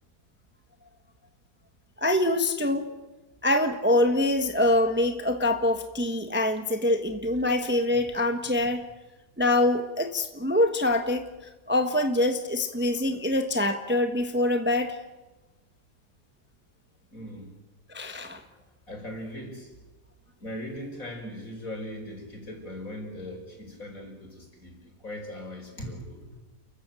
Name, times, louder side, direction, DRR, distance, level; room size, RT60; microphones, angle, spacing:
voice 1, 2.0-2.9 3.4-8.8 9.4-11.3 11.7-15.0 17.9-18.4, left 1 dB, 5° right, 6 dB, 1.3 m, -24 dB
voice 2, 17.1-17.5 18.9-19.8 20.4-26.4, left 1 dB, 55° left, 3 dB, 5.8 m, -39 dB
29.5 x 15.0 x 9.2 m, 1.1 s
omnidirectional pair, 1.8 m